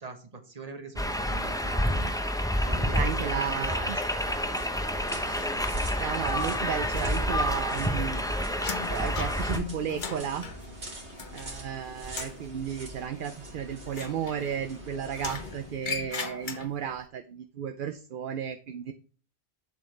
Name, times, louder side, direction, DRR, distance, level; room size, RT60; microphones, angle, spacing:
voice 1, 0.0-2.1 2.6-4.4, right 4 dB, 35° right, 7 dB, 1.4 m, -42 dB
sound 1, 1.0-9.6, equal, 5° left, 0.8 m, -29 dB
voice 2, 2.9-4.0 5.2-5.5 6.0-8.5 8.9-10.5 11.3-18.9, right 8 dB, 55° right, 8 dB, 0.8 m, -34 dB
sound 2, 3.9-15.9, right 1 dB, 85° right, 2.6 m, -43 dB
sound 3, 6.9-7.7 8.0-11.7 12.0-12.5 13.9-14.8 15.1-17.0, left 5 dB, 50° left, 1.1 m, -38 dB
7.5 x 7.5 x 3.3 m, 0.39 s
omnidirectional pair, 1.1 m